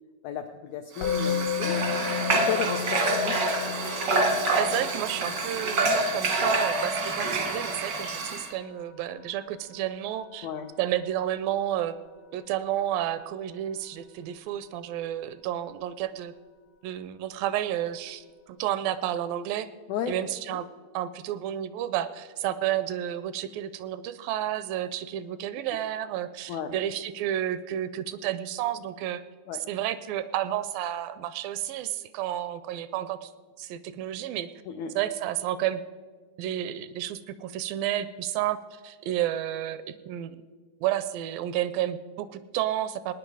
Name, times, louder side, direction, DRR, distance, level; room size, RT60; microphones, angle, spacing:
voice 1, 0.2-3.4 10.4-10.7 19.9-20.2 20.5-20.6 26.5-26.7 29.5-29.6 34.7-35.0, left 8 dB, 85° left, 5 dB, 1.6 m, -34 dB
Musical instrument, 1.0-12.1, left 8 dB, 65° left, 1.8 m, -35 dB
Water / Water tap faucet, 1.0-8.5, right 2 dB, 65° right, 1.1 m, -27 dB
voice 2, 4.6-10.5 10.8-12.0 12.3-16.3 16.8-19.7 20.1-20.7 20.9-29.2 29.7-33.3 33.6-34.5 35.0-35.8 36.4-40.4 40.8-43.1, right 12 dB, 80° right, 14 dB, 2.2 m, -31 dB
19.5 x 9.6 x 4.8 m, 1.5 s
omnidirectional pair, 4.2 m